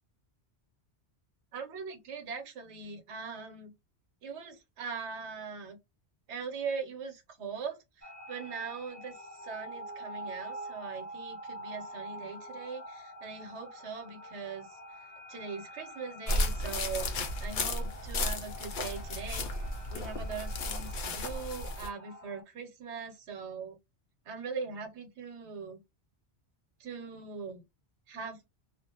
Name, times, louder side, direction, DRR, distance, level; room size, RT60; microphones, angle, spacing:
voice 1, 1.5-3.7 4.2-5.8 6.3-14.8 15.3-19.6 19.9-23.8 24.3-25.8 26.8-27.6 28.1-28.4, right 5 dB, 85° right, 1.0 m, -41 dB
sound 1, 8.0-22.4, right 1 dB, 15° left, 1.1 m, -46 dB
sound 2, 16.3-21.9, left 2 dB, 55° left, 0.6 m, -34 dB
2.4 x 2.0 x 2.7 m
omnidirectional pair, 1.1 m